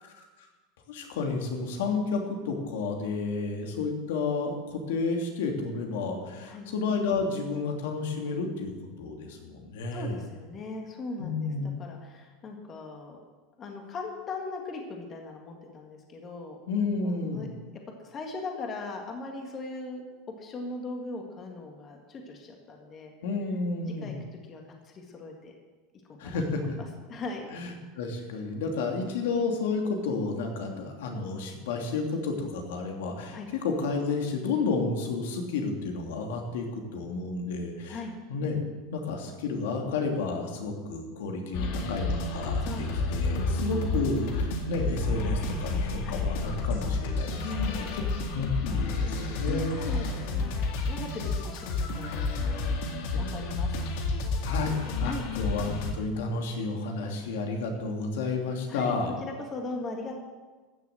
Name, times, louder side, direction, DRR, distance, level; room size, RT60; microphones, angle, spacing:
voice 1, 0.9-8.7 9.0-10.2 11.2-11.7 16.7-17.5 23.2-24.1 26.2-26.8 27.5-38.0 38.3-38.6 38.9-48.0 48.3-49.8 54.4-59.1, left 4 dB, 85° left, 2 dB, 2.6 m, -31 dB
voice 2, 9.9-11.5 11.8-13.2 13.6-16.6 17.0-20.0 20.4-23.1 24.0-24.1 24.5-25.5 26.1-26.4 27.1-27.5 33.3-33.5 37.9-38.1 42.6-43.6 46.0-46.2 47.4-47.9 49.5-53.8 55.0-55.2 58.7-58.9 59.2-60.2, left 3 dB, 25° left, 2 dB, 1.9 m, -39 dB
sound 1, 41.5-55.9, left 3 dB, 60° left, 2.1 m, -30 dB
14.0 x 7.1 x 7.9 m, 1.3 s
supercardioid pair, 160°, 0 cm